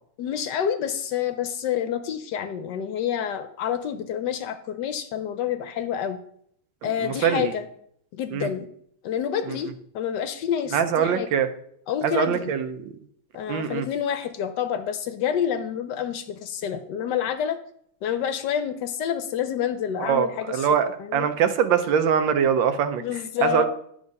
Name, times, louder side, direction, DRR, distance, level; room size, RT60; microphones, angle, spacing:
voice 1, 0.2-6.2 6.8-7.7 8.1-8.7 9.0-9.7 9.9-11.3 11.9-12.5 13.3-17.6 18.0-20.7 21.0-21.3 23.0-23.7, left 9 dB, 70° left, 9 dB, 1.1 m, -28 dB
voice 2, 7.0-7.5 8.3-8.5 9.5-9.6 10.7-11.5 12.0-12.8 13.5-13.9 20.0-23.0 23.4-23.7, right 8 dB, 75° right, 10 dB, 1.3 m, -23 dB
10.5 x 3.5 x 5.2 m, 0.68 s
omnidirectional pair, 2.1 m